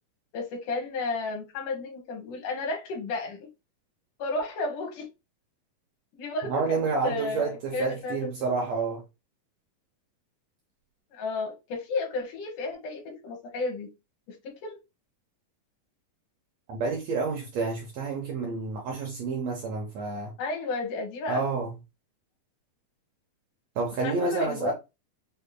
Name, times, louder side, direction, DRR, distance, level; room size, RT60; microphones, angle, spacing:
voice 1, 0.3-3.5 4.2-5.1 6.1-8.5 11.1-13.9 14.3-14.8 20.4-21.6 24.0-24.7, left 3 dB, 75° left, 2.5 m, -33 dB
voice 2, 6.5-9.0 16.7-20.3 21.3-21.7 23.8-24.7, right 4 dB, 75° right, 1.6 m, -29 dB
6.6 x 2.7 x 2.2 m
omnidirectional pair, 3.8 m